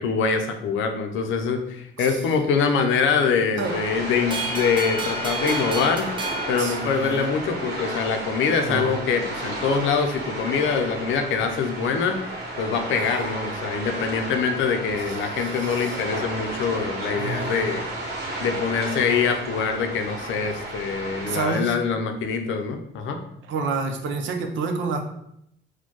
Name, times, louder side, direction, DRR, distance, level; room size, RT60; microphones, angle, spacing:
voice 1, 0.0-6.1 6.5-12.2 12.6-17.8 18.4-23.2, left 5 dB, 80° left, 5 dB, 0.5 m, -24 dB
sound 1, 3.6-21.4, right 2 dB, 55° right, 1.1 m, -33 dB
sound 2, 4.3-7.5, right 2 dB, 25° right, 0.6 m, -32 dB
voice 2, 6.6-7.3 8.6-9.0 12.9-13.4 15.4-16.0 17.1-17.7 21.3-21.7 23.5-25.1, right 4 dB, 75° right, 5 dB, 0.6 m, -29 dB
4.3 x 2.2 x 3.0 m, 0.75 s
cardioid pair, 90°, 20 cm